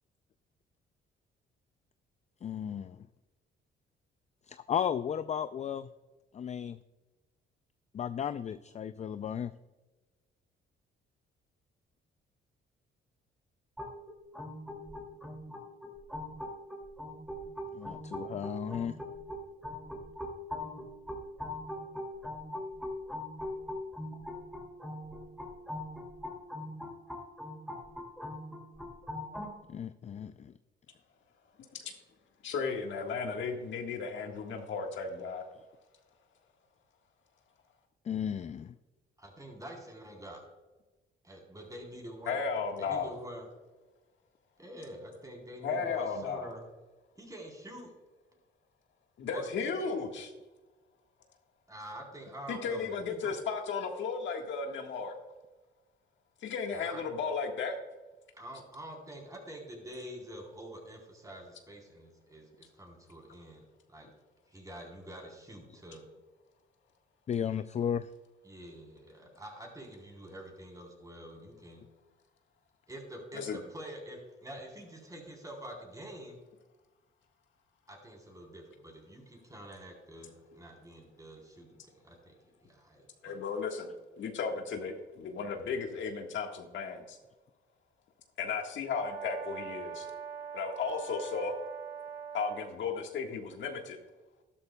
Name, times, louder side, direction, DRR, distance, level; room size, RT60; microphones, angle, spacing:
voice 1, 2.4-3.0 4.5-5.9 6.3-6.8 7.9-9.5 17.7-19.0 29.7-30.5 38.1-38.7 67.3-68.1, left 8 dB, 35° left, 12 dB, 0.4 m, -34 dB
sound 1, 13.8-29.5, left 1 dB, ahead, 2.4 m, -41 dB
voice 2, 32.4-35.4 42.3-43.1 45.6-46.5 49.2-50.3 52.5-55.1 56.4-57.8 73.3-73.6 83.2-83.9 84.2-87.2 88.4-90.1 90.5-91.5 92.3-94.0, left 5 dB, 70° left, 3 dB, 1.5 m, -35 dB
voice 3, 39.2-40.5 41.2-42.4 42.8-43.5 44.6-46.6 47.2-47.9 49.3-49.9 51.7-53.3 56.7-57.0 58.3-64.1 64.5-66.0 68.4-71.8 72.9-76.4 77.9-83.4, right 1 dB, 15° right, 1 dB, 3.7 m, -47 dB
Brass instrument, 88.9-92.8, right 7 dB, 70° right, 2.9 m, -42 dB
12.5 x 12.0 x 2.3 m, 1.2 s
cardioid pair, 90°, 20 cm